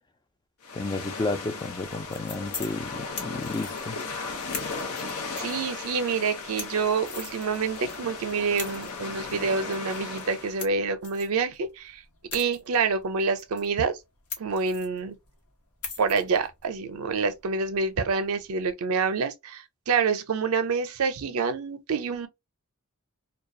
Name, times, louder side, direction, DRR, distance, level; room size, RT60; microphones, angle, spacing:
sound 1, 0.6-10.6, left 4 dB, 90° left, 0.7 m, -36 dB
voice 1, 0.7-4.0, left 3 dB, 20° left, 0.4 m, -32 dB
sound 2, 1.8-18.7, left 4 dB, 75° left, 1.0 m, -44 dB
voice 2, 5.4-12.0 12.3-14.0 14.4-15.2 16.0-22.3, right 5 dB, 70° right, 0.5 m, -27 dB
2.3 x 2.2 x 2.6 m
head